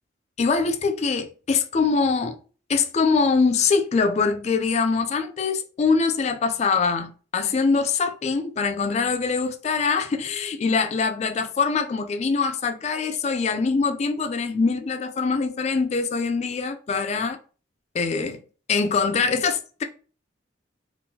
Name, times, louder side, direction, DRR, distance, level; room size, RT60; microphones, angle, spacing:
voice 1, 0.4-2.4 2.7-17.4 17.9-18.4 18.7-19.8, left 4 dB, 35° left, 0.3 m, -23 dB
2.7 x 2.5 x 3.6 m
head